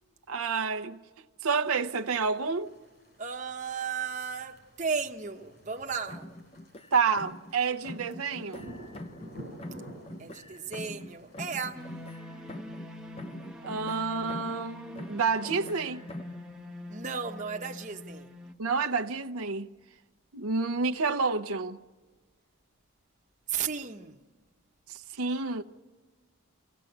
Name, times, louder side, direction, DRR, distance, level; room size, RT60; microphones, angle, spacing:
voice 1, 0.3-1.0 1.4-2.7 6.9-8.7 13.6-16.0 18.6-19.7 20.3-21.8 24.9-25.6, right 5 dB, 85° right, 0.7 m, -29 dB
sound 1, 1.6-12.2, right 1 dB, 45° left, 5.9 m, -51 dB
voice 2, 3.2-6.3 10.2-11.8 16.9-18.3 23.5-24.2, right 6 dB, 35° right, 0.9 m, -35 dB
sound 2, 6.1-7.6 7.8-9.3 9.6-12.9 13.2-14.7 15.0-16.4, left 1 dB, 25° left, 0.7 m, -44 dB
sound 3, 11.7-18.5, left 1 dB, 5° right, 1.0 m, -44 dB
25.0 x 16.5 x 7.9 m
head